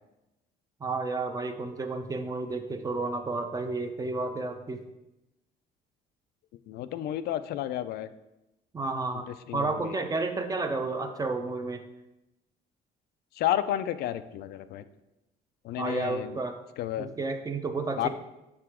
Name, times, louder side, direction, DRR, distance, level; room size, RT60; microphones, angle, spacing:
voice 1, 0.8-4.8 8.7-9.3 9.5-11.8 15.8-16.6 17.0-18.1, right 3 dB, 20° right, 6 dB, 0.6 m, -31 dB
voice 2, 6.7-8.1 9.5-9.9 13.4-14.8 15.6-16.4 16.8-17.1 18.0-18.1, left 12 dB, 70° left, 12 dB, 0.4 m, -31 dB
6.6 x 4.8 x 3.6 m, 0.94 s
cardioid pair, 110°, 17 cm